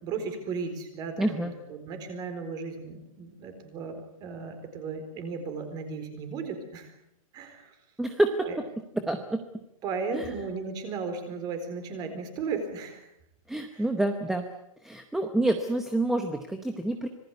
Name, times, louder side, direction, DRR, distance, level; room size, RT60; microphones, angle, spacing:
voice 1, 0.0-6.9 7.3-7.8 8.4-8.6 9.8-13.1 13.7-13.9, right 4 dB, 20° right, 8 dB, 4.2 m, -35 dB
voice 2, 1.2-1.5 8.0-8.5 9.0-9.4 10.1-10.3 13.5-14.5 14.8-17.1, right 1 dB, ahead, 6 dB, 0.8 m, -27 dB
26.0 x 20.0 x 8.3 m, 0.78 s
hypercardioid pair, 170°, 18 cm